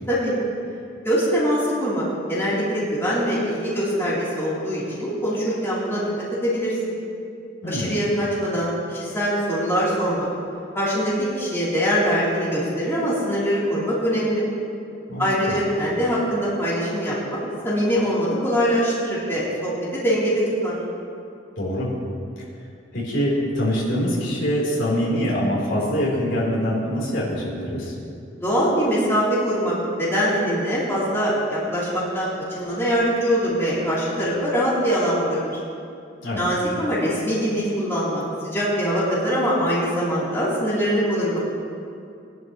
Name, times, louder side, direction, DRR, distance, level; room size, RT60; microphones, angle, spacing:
voice 1, 1.0-6.1 6.4-6.8 7.6-10.3 10.7-14.4 15.2-20.8 28.4-35.6 36.4-41.4, equal, 15° left, -9 dB, 3.6 m, -23 dB
voice 2, 7.6-8.0 15.1-15.6 21.6-21.9 22.9-27.9 36.2-36.4, equal, 70° left, -5 dB, 3.9 m, -24 dB
21.0 x 11.5 x 3.2 m, 2.5 s
head